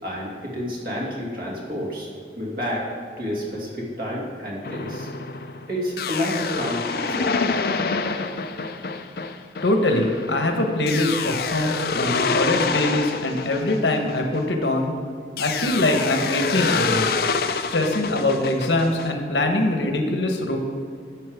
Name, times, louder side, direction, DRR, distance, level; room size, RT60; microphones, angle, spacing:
voice 1, 0.0-2.1 2.4-2.8 3.2-5.1 5.7-7.3, equal, 55° right, -4 dB, 2.3 m, -29 dB
sound 1, 4.6-14.8 15.4-19.1, left 4 dB, 55° left, 0.5 m, -27 dB
voice 2, 9.6-15.0 15.4-17.1 17.6-20.6, left 1 dB, 90° left, 4 dB, 1.2 m, -23 dB
10.5 x 7.5 x 3.6 m, 2.1 s
head